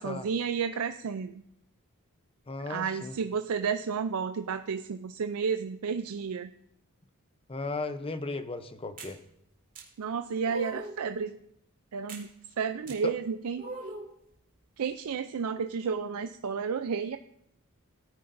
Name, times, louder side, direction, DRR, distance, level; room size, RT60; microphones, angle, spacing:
voice 1, 0.0-1.4 2.7-6.5 10.0-11.4 11.9-12.3 12.6-13.6 14.8-17.2, right 6 dB, 75° right, 8 dB, 0.4 m, -31 dB
voice 2, 2.5-3.1 7.5-9.2, left 3 dB, 25° left, 10 dB, 0.7 m, -36 dB
sound 1, 9.0-9.2 9.8-9.9 10.5-11.0 12.1-12.3 12.9-13.0 13.6-14.1, right 2 dB, 40° right, 2.0 m, -40 dB
17.5 x 9.5 x 2.6 m, 0.77 s
head